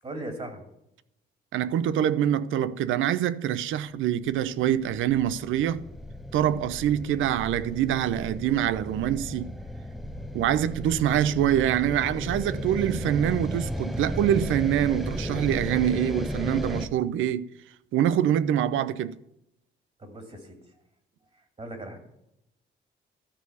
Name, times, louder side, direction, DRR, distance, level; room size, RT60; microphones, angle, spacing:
voice 1, 0.0-0.6 20.0-20.6 21.6-22.0, right 1 dB, 30° right, 2.6 m, -38 dB
voice 2, 1.5-5.8 6.3-9.5 10.3-17.5 17.9-19.1, right 10 dB, 80° right, 0.6 m, -25 dB
sound 1, 4.3-16.9, equal, ahead, 0.8 m, -35 dB
13.0 x 4.7 x 8.2 m
cardioid pair, 90°, 20 cm